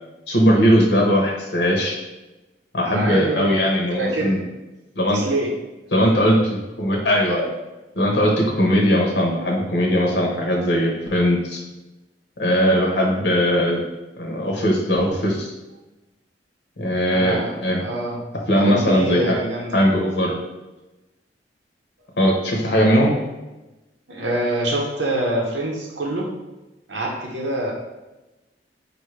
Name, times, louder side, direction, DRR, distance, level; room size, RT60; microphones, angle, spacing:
voice 1, 0.3-2.0 2.7-4.4 5.0-5.2 5.9-7.5 7.9-11.6 12.4-13.8 14.2-15.5 16.8-17.8 18.5-19.4 19.7-20.3 22.2-23.1, equal, 75° left, -1 dB, 0.9 m, -19 dB
voice 2, 2.8-4.3 5.1-5.5 17.1-18.2 18.5-19.8 24.1-26.3 26.9-27.7, right 1 dB, 90° right, -1 dB, 0.8 m, -25 dB
5.0 x 2.6 x 3.2 m, 1.1 s
head